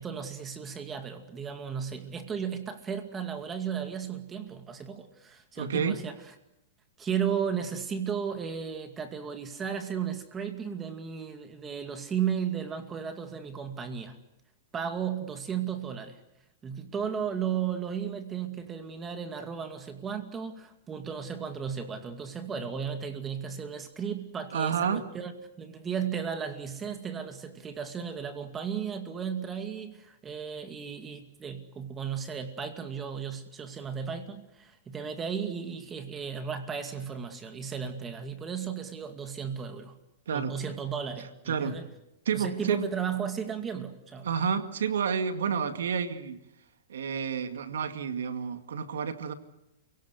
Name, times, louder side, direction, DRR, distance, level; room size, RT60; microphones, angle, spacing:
voice 1, 0.0-6.2 7.0-14.2 14.7-16.2 16.6-25.3 25.6-40.0 40.3-41.9 42.3-44.3, right 7 dB, 20° right, 7 dB, 2.3 m, -34 dB
voice 2, 5.6-6.0 24.5-25.1 40.3-40.6 41.5-41.8 42.3-42.9 44.2-46.4 46.9-49.3, right 7 dB, 85° right, 9 dB, 2.1 m, -30 dB
29.0 x 17.5 x 8.2 m, 0.88 s
hypercardioid pair, 135°, 0 cm